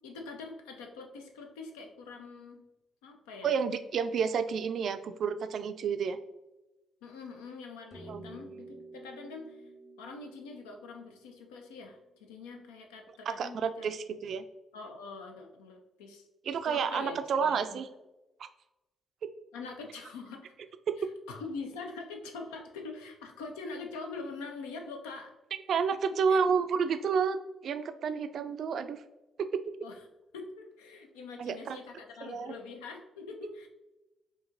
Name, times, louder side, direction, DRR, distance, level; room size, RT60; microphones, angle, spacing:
voice 1, 0.0-2.6 3.0-3.5 7.0-9.6 10.0-14.2 14.7-16.3 16.6-17.8 19.5-20.5 21.0-25.3 26.1-26.4 29.8-30.0 30.3-33.7, left 4 dB, 80° left, 3 dB, 0.5 m, -44 dB
voice 2, 3.4-6.2 8.1-8.3 13.3-14.4 16.5-17.9 18.4-18.5 25.7-27.4 27.6-29.0 29.4-29.6 31.4-31.8 32.2-32.5, right 6 dB, 60° right, 10 dB, 0.3 m, -30 dB
sound 1, 7.9-12.6, right 2 dB, 25° left, 1.1 m, -51 dB
4.8 x 2.8 x 2.5 m, 1.0 s
hypercardioid pair, 40°, 0 cm